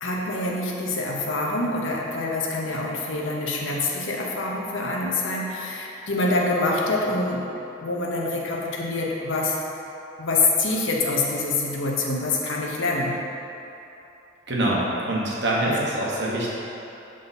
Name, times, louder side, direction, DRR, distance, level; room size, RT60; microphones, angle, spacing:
voice 1, 0.0-7.5 7.8-9.6 10.2-13.2 15.7-15.8, left 2 dB, 70° left, -2 dB, 0.8 m, -26 dB
voice 2, 14.5-16.5, right 1 dB, 60° right, -5 dB, 1.1 m, -24 dB
6.7 x 3.8 x 4.0 m, 3.0 s
head